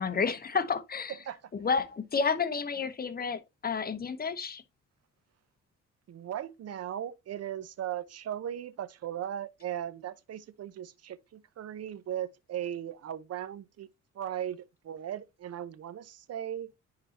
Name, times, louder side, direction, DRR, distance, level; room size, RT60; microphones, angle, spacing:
voice 1, 0.0-1.2 1.5-4.6, left 5 dB, 30° left, 1.0 m, -30 dB
voice 2, 6.1-13.9 14.1-16.7, right 10 dB, 55° right, 0.8 m, -37 dB
10.0 x 3.8 x 2.9 m
cardioid pair, 90°, 30 cm